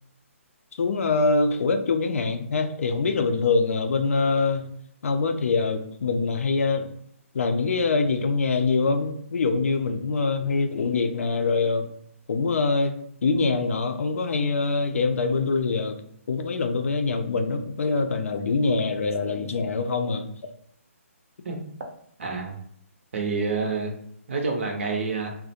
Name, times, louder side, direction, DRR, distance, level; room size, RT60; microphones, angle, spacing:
voice 1, 0.7-4.7 5.0-6.9 7.3-11.9 12.3-16.0 16.3-20.3, left 4 dB, 70° left, 7 dB, 0.4 m, -24 dB
voice 2, 22.2-22.5 23.1-23.9 24.3-25.4, right 4 dB, 55° right, 2 dB, 0.6 m, -27 dB
2.4 x 2.1 x 2.8 m, 0.68 s
hypercardioid pair, 160°, 8 cm